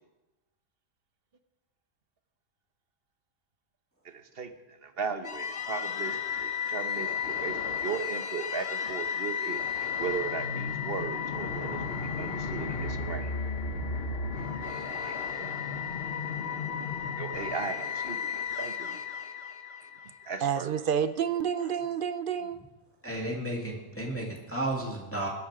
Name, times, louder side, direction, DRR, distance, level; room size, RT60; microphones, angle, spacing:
voice 1, 4.0-4.5 4.8-13.3 15.0-15.5 17.2-19.0 20.2-20.7, right 6 dB, 45° right, 9 dB, 1.1 m, -37 dB
sound 1, 5.2-20.4, left 6 dB, 45° left, 1.4 m, -33 dB
voice 2, 20.4-22.6, right 8 dB, 65° right, 12 dB, 0.5 m, -29 dB
voice 3, 23.0-25.3, right 1 dB, 10° left, -1 dB, 2.1 m, -33 dB
20.0 x 10.5 x 4.9 m, 1.1 s
omnidirectional pair, 1.5 m